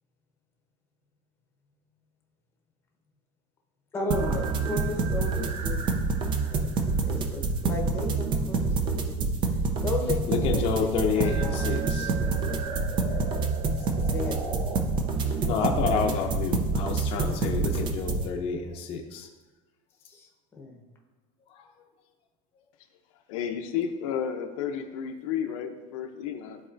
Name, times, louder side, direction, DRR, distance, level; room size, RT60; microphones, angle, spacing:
voice 1, 3.9-5.8 6.3-6.7 7.0-9.3 9.8-11.7 12.0-13.5 14.1-14.6 20.1-20.3 20.5-20.8, left 3 dB, 15° left, 0 dB, 1.0 m, -35 dB
sound 1, 4.1-18.2, right 4 dB, 30° right, 0.5 m, -27 dB
voice 2, 10.3-12.1 15.2-19.3 21.5-21.7, left 6 dB, 35° left, 1 dB, 0.7 m, -29 dB
voice 3, 23.3-26.6, left 8 dB, 85° left, 5 dB, 0.7 m, -32 dB
12.0 x 4.2 x 2.5 m, 1.3 s
cardioid pair, 165°, 17 cm